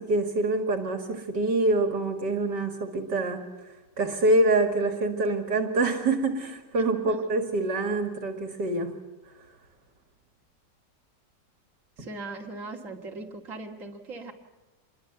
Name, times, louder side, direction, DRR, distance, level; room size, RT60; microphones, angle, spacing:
voice 1, 0.0-3.4 4.0-8.9, right 2 dB, 70° right, 6 dB, 2.8 m, -25 dB
voice 2, 12.0-14.3, right 3 dB, 45° right, 1 dB, 2.7 m, -39 dB
27.0 x 22.0 x 8.1 m, 1.1 s
omnidirectional pair, 1.9 m